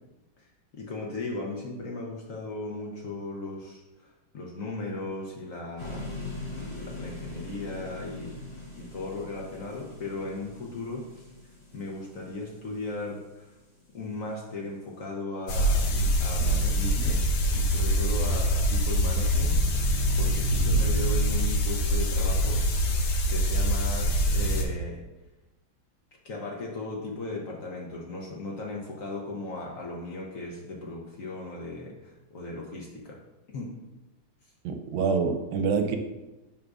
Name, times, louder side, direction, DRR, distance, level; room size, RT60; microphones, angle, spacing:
voice 1, 0.4-6.1 6.5-8.4 8.7-11.3 11.7-13.5 13.9-19.6 20.2-22.9 23.3-25.0 26.2-33.2 33.5-33.7 34.4-34.5, left 2 dB, 60° left, -1 dB, 0.9 m, -37 dB
sound 1, 5.8-13.8, left 2 dB, 35° left, 2.2 m, -42 dB
sound 2, 15.5-24.6, equal, 75° left, 1.5 m, -24 dB
voice 2, 34.6-36.0, right 5 dB, 75° right, 6 dB, 1.3 m, -26 dB
11.0 x 3.7 x 2.5 m, 1.0 s
omnidirectional pair, 2.2 m